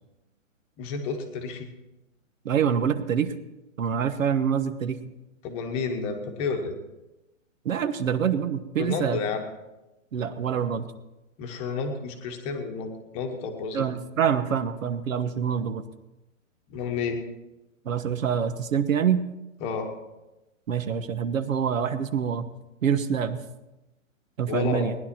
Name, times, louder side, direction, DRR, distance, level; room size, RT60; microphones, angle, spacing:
voice 1, 0.8-1.7 5.4-6.8 8.8-9.4 11.4-13.9 16.7-17.2 19.6-19.9 24.5-24.8, left 5 dB, 15° left, 4 dB, 1.1 m, -30 dB
voice 2, 2.4-3.3 3.8-5.0 7.6-9.2 10.1-10.9 13.7-15.8 17.8-19.2 20.7-22.5 22.8-23.4 24.4-25.0, right 7 dB, 75° right, 10 dB, 1.3 m, -26 dB
19.0 x 11.0 x 4.4 m, 1.0 s
hypercardioid pair, 165°, 40 cm